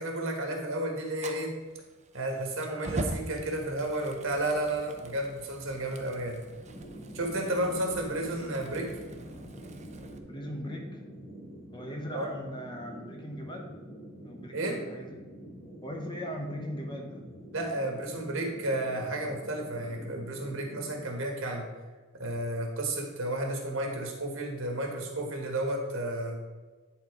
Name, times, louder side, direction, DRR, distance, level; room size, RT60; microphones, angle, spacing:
voice 1, 0.0-1.5 2.1-6.4 7.1-8.9 12.1-12.3 14.5-14.8 17.5-21.7 22.2-26.4, right 1 dB, 65° right, 2 dB, 1.6 m, -32 dB
Fire, 1.2-10.2, right 1 dB, 35° right, 0.7 m, -42 dB
sound 1, 6.6-21.1, equal, 50° left, 2.4 m, -46 dB
voice 2, 10.3-11.0 11.7-13.7 14.2-15.2 15.8-17.2, equal, 20° left, 1 dB, 1.1 m, -39 dB
10.5 x 4.0 x 4.8 m, 1.3 s
head